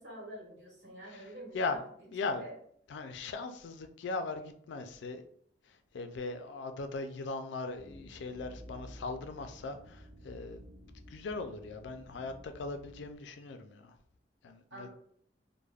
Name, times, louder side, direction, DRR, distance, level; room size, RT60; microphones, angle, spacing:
voice 1, 0.0-1.8 2.2-2.5 14.7-14.9, right 1 dB, 75° right, 1.1 m, -47 dB
voice 2, 2.1-2.4 2.9-5.2 5.6-10.6 11.1-13.9 14.4-14.9, left 3 dB, 80° left, 0.4 m, -39 dB
sound 1, 7.7-13.2, equal, 10° right, 0.4 m, -52 dB
2.3 x 2.1 x 3.2 m
head